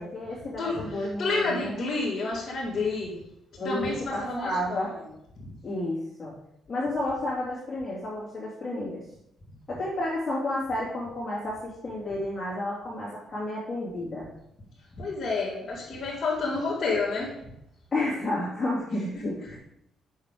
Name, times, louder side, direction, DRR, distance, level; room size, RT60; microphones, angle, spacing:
voice 1, 0.0-1.8 3.6-4.9 5.6-6.4 6.7-9.0 9.7-14.3 17.9-19.6, left 1 dB, 25° left, -9 dB, 3.1 m, -31 dB
voice 2, 0.6-3.2 3.6-5.0 15.0-17.4, left 3 dB, 45° left, -6 dB, 2.5 m, -29 dB
7.4 x 7.0 x 5.2 m, 0.78 s
cardioid pair, 90°, 0 cm